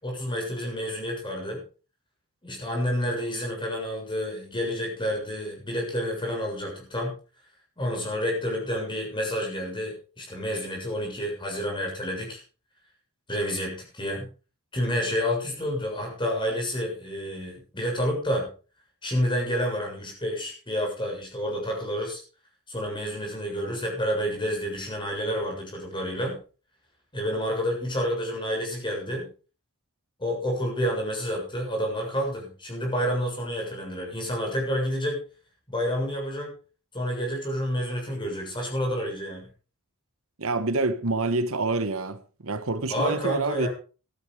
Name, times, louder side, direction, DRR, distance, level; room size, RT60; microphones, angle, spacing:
voice 1, 0.0-1.6 2.4-7.1 7.8-12.4 13.3-14.3 14.7-18.5 19.0-22.2 22.7-26.4 27.1-29.3 30.2-35.2 35.7-36.5 36.9-39.5 42.9-43.7, equal, 20° left, 7.2 m, -29 dB
voice 2, 40.4-43.7, right 3 dB, 65° right, 1.3 m, -27 dB
15.0 x 12.0 x 5.0 m
head